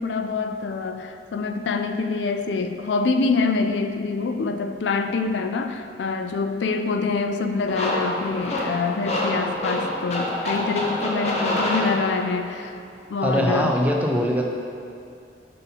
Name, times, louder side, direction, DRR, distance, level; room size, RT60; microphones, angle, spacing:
voice 1, 0.0-12.7 13.1-13.8, left 4 dB, 90° left, 6 dB, 0.4 m, -25 dB
sound 1, 7.7-12.5, left 1 dB, 40° left, 0.7 m, -27 dB
voice 2, 13.2-14.4, equal, 10° right, -1 dB, 0.5 m, -22 dB
5.6 x 5.3 x 4.1 m, 2.5 s
head